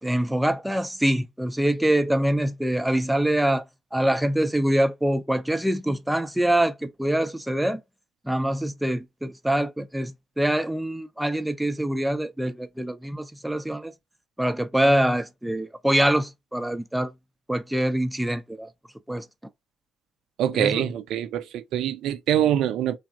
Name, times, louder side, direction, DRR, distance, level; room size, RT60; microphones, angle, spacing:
voice 1, 0.0-3.6 3.9-7.8 8.3-13.9 14.4-17.1 17.5-18.7 19.1-19.3 20.5-20.9, right 1 dB, 5° right, 0.5 m, -24 dB
voice 2, 20.4-23.0, right 10 dB, 60° right, 0.5 m, -24 dB
3.3 x 2.1 x 3.7 m
figure-of-eight pair, 45°, 0 cm